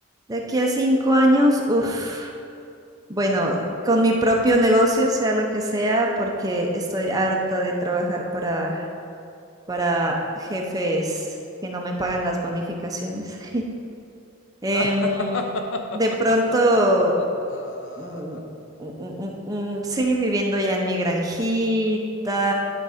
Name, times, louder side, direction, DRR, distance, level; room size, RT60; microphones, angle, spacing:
voice 1, 0.3-2.3 3.1-8.9 9.7-11.3 11.6-13.6 14.6-15.3 15.9-17.1 18.0-18.4 18.8-22.0 22.2-22.5, right 1 dB, 15° right, 0 dB, 0.7 m, -22 dB
sound 1, 14.7-18.4, left 2 dB, 60° left, 0.5 m, -30 dB
10.5 x 3.8 x 5.0 m, 2.5 s
head